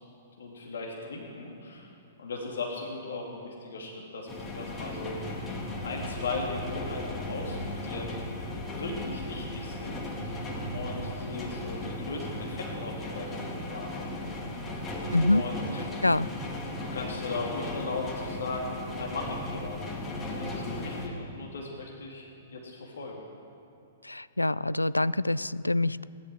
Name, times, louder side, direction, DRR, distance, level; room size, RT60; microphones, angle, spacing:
voice 1, 0.4-1.9 2.2-5.3 5.8-8.2 8.7-14.1 15.3-15.8 16.9-22.2 22.5-23.2, left 3 dB, 60° left, -1 dB, 2.5 m, -37 dB
sound 1, 4.3-21.1, left 1 dB, 15° left, 2.2 m, -36 dB
voice 2, 15.1-15.4 16.0-16.3 24.0-26.0, left 2 dB, 85° left, 18 dB, 0.3 m, -25 dB
17.0 x 11.5 x 6.3 m, 2.8 s
figure-of-eight pair, 110°, 0 cm